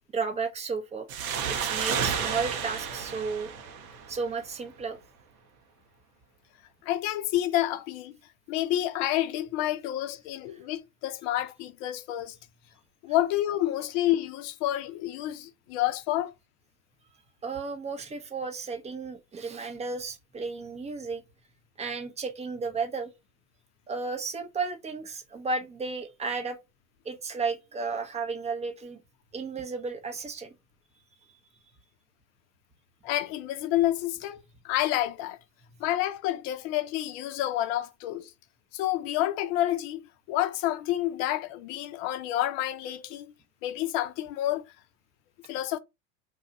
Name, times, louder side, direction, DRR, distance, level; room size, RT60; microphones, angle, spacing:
voice 1, 0.1-1.1 1.5-3.5 4.1-5.0 17.4-21.2 21.8-23.1 23.9-26.6 27.0-29.0 29.3-30.5, right 4 dB, 15° right, 0.6 m, -33 dB
sound 1, 1.1-4.5, right 7 dB, 75° right, 0.9 m, -31 dB
voice 2, 6.8-8.2 8.5-12.4 13.0-16.3 33.0-35.4 35.8-38.3 38.7-40.0 40.3-43.3 43.6-44.6 45.5-45.8, left 13 dB, 50° left, 0.6 m, -29 dB
2.8 x 2.3 x 4.0 m
hypercardioid pair, 95°, 43 cm